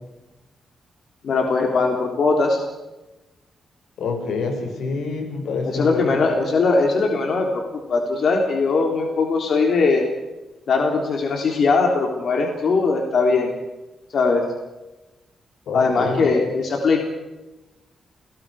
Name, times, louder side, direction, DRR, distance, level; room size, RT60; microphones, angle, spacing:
voice 1, 1.2-2.6 5.6-7.6 7.9-10.0 10.7-13.5 14.1-14.5 15.7-17.1, left 4 dB, 50° left, 2 dB, 3.5 m, -20 dB
voice 2, 4.0-6.4 15.7-16.3, left 4 dB, 85° left, 4 dB, 6.1 m, -27 dB
30.0 x 20.0 x 5.0 m, 1.1 s
wide cardioid pair, 180°, 0 cm